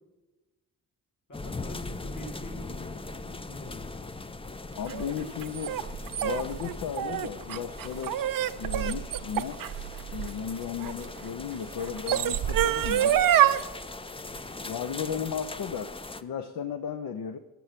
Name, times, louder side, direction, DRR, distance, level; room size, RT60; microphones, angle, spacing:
voice 1, 1.3-3.9 5.2-5.3, left 1 dB, 50° left, 3 dB, 2.1 m, -44 dB
sound 1, 1.3-16.2, left 3 dB, 15° left, 0.5 m, -40 dB
voice 2, 4.7-5.8 6.2-8.2 8.6-9.6 10.1-13.2 14.6-17.4, left 7 dB, 65° left, 9 dB, 0.6 m, -35 dB
sound 2, 4.9-11.0 11.8-13.6, right 11 dB, 60° right, 0.5 m, -26 dB
7.7 x 6.8 x 5.7 m, 1.2 s
supercardioid pair, 45°, 37 cm